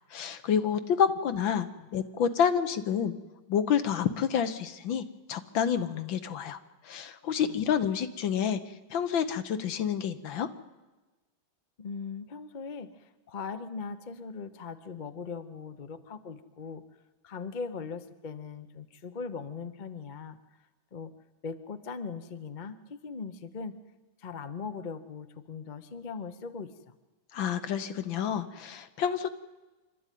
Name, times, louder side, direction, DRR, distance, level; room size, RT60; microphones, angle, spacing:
voice 1, 0.1-1.7 1.9-3.1 3.5-8.6 8.9-10.5 27.3-29.3, left 8 dB, 70° left, 11 dB, 1.8 m, -28 dB
voice 2, 7.4-7.8 11.8-16.8 17.2-20.4 20.9-21.1 21.4-23.7 24.2-27.0, left 5 dB, 40° left, 10 dB, 0.6 m, -40 dB
25.5 x 12.5 x 9.3 m, 1.2 s
omnidirectional pair, 2.3 m